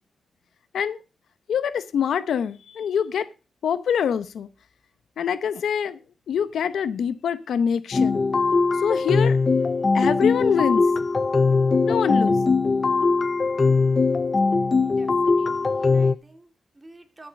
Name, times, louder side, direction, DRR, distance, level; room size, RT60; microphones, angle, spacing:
voice 1, 1.5-3.3 3.6-4.5 5.2-6.0 6.3-8.2 8.8-9.4 9.9-10.9 11.8-12.4, left 7 dB, 85° left, 0.7 m, -24 dB
sound 1, 7.9-16.1, left 4 dB, 35° left, 0.5 m, -20 dB
voice 2, 14.8-17.3, right 2 dB, 20° right, 2.5 m, -50 dB
13.5 x 7.3 x 5.3 m
cardioid pair, 85°, 0 cm